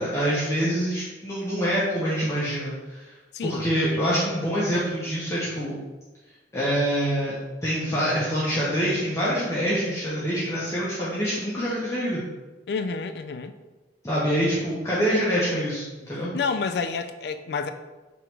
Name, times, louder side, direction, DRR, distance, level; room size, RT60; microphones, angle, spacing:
voice 1, 0.0-3.1 3.4-5.8 6.5-7.3 7.6-12.2 14.0-16.3, equal, 15° left, -8 dB, 0.7 m, -25 dB
voice 2, 3.3-4.1 12.7-13.5 16.3-17.7, left 5 dB, 60° left, 9 dB, 0.3 m, -29 dB
3.7 x 3.0 x 4.4 m, 1.2 s
head